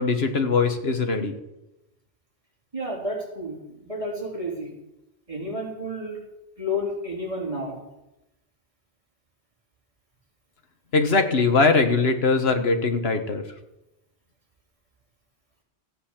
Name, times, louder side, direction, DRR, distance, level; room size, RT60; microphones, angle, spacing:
voice 1, 0.0-1.3 10.9-13.4, left 4 dB, 70° left, 7 dB, 1.7 m, -21 dB
voice 2, 2.7-4.7 5.3-6.2 6.6-7.8, left 1 dB, 30° right, -3 dB, 4.0 m, -31 dB
14.5 x 8.7 x 7.4 m, 0.92 s
omnidirectional pair, 1.1 m